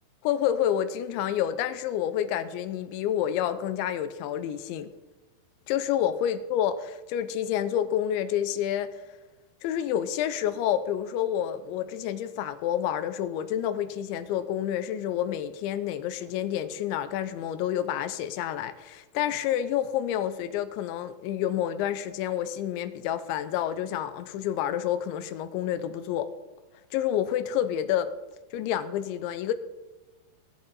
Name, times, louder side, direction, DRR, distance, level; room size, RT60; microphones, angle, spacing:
voice 1, 0.2-4.9 5.7-9.0 9.6-26.3 26.9-28.1 28.5-29.5, left 10 dB, 90° left, 3.1 m, -29 dB
19.0 x 9.7 x 5.6 m
omnidirectional pair, 5.3 m